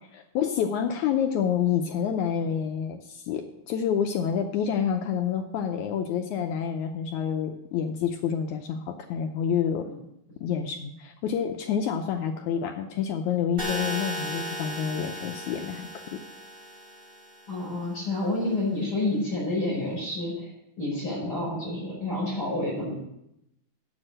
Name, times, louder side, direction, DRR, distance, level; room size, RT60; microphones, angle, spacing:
voice 1, 0.1-9.9 10.4-16.2, left 8 dB, 80° left, 4 dB, 1.7 m, -28 dB
sound 1, 13.6-17.6, equal, 30° right, 1.9 m, -36 dB
voice 2, 17.5-22.9, left 2 dB, 25° left, -6 dB, 5.8 m, -29 dB
8.0 x 7.4 x 7.6 m, 0.83 s
omnidirectional pair, 4.1 m